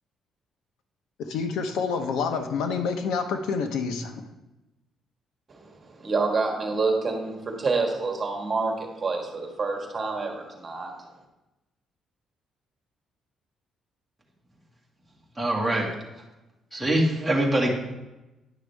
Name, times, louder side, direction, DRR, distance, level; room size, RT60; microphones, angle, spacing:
voice 1, 1.3-4.1, left 5 dB, 90° left, 6 dB, 0.9 m, -28 dB
voice 2, 5.5-10.9, right 3 dB, 30° right, 2 dB, 1.6 m, -28 dB
voice 3, 15.4-15.9 16.7-17.7, right 1 dB, 5° right, -3 dB, 1.8 m, -23 dB
10.5 x 6.3 x 3.5 m, 1.0 s
cardioid pair, 130°, 0 cm